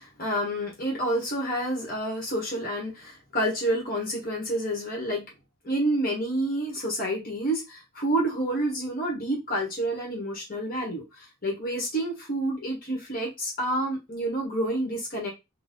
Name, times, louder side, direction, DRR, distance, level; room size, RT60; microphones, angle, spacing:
voice 1, 0.0-5.2 5.6-15.3, right 1 dB, 45° left, 1.2 m, -29 dB
4.0 x 2.3 x 3.7 m
head